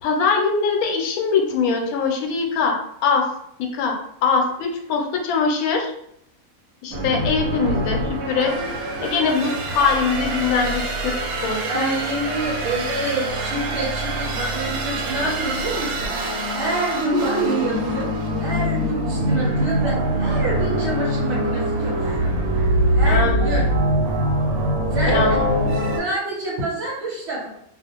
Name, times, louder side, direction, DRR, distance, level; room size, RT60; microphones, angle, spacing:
voice 1, 0.0-2.8 3.0-3.3 3.6-5.9 6.8-8.5 9.0-11.1 11.4-11.9 23.0-23.6 25.1-25.4, left 5 dB, 85° left, 2 dB, 1.0 m, -22 dB
sound 1, 6.9-26.0, right 1 dB, 85° right, 1.0 m, -23 dB
voice 2, 11.6-16.1 16.5-18.1 18.4-22.3 22.9-23.7 24.9-25.4 26.0-27.5, right 2 dB, 60° right, -6 dB, 1.1 m, -27 dB
2.4 x 2.3 x 2.8 m, 0.74 s
omnidirectional pair, 1.5 m